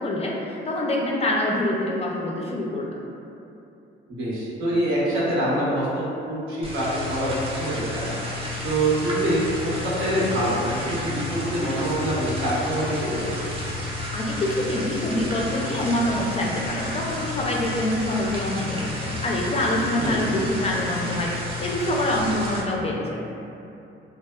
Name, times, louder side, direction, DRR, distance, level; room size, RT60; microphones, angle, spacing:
voice 1, 0.0-3.0 14.1-21.3 21.6-23.2, left 1 dB, 30° left, -2 dB, 0.4 m, -25 dB
voice 2, 4.1-8.1 8.6-13.3 20.0-20.3, right 1 dB, 80° right, -8 dB, 0.8 m, -25 dB
sound 1, 6.6-22.6, left 2 dB, 30° right, 0.5 m, -31 dB
2.7 x 2.0 x 2.2 m, 2.7 s
cardioid pair, 90°, 20 cm